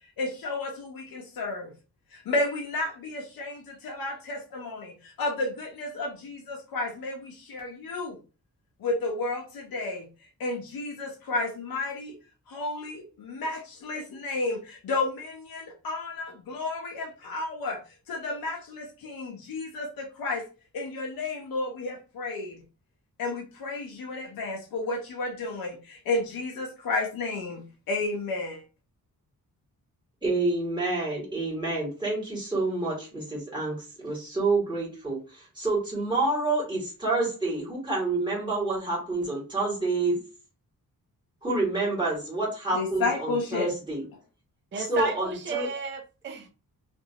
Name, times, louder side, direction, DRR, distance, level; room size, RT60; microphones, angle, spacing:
voice 1, 0.2-1.7 2.1-8.2 8.8-10.1 10.4-12.2 12.5-17.8 18.1-20.5 20.7-22.6 23.2-28.6 42.7-43.7, left 2 dB, 75° left, 0.7 m, -32 dB
voice 2, 30.2-40.2 41.4-44.0 44.8-45.7, right 2 dB, 15° right, 1.7 m, -28 dB
voice 3, 44.7-46.5, right 5 dB, 35° right, 0.5 m, -33 dB
2.9 x 2.6 x 2.7 m
wide cardioid pair, 145°, 35 cm